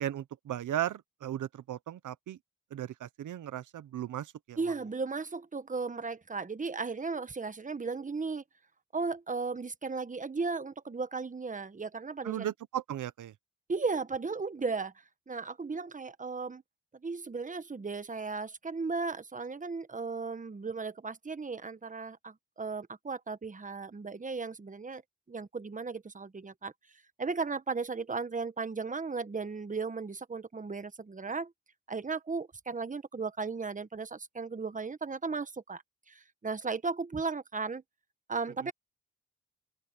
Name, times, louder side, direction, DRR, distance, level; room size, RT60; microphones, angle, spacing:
voice 1, 0.0-2.4 2.7-4.7 12.2-13.3 38.7-38.8, right 11 dB, 80° right, 1.0 m, -36 dB
voice 2, 4.6-8.4 8.9-12.5 13.7-14.9 15.3-16.6 17.0-25.0 25.3-26.7 27.2-31.5 31.9-35.8 36.1-37.8 38.3-38.7, right 4 dB, 25° right, 1.2 m, -35 dB
open air
cardioid pair, 65°, 30 cm